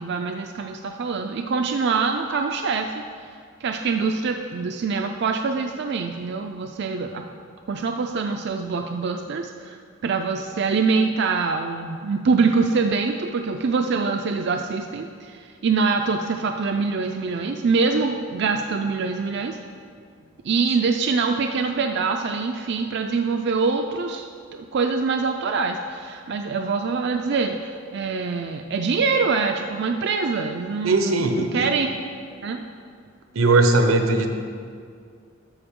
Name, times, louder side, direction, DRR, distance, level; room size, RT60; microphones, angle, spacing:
voice 1, 0.0-3.0 3.6-7.3 7.7-19.6 20.4-24.3 24.5-31.9 32.4-32.6, right 4 dB, 55° right, 4 dB, 0.4 m, -24 dB
voice 2, 30.8-31.8 33.3-34.3, right 2 dB, 90° right, 5 dB, 0.9 m, -19 dB
12.0 x 6.9 x 3.7 m, 2.1 s
head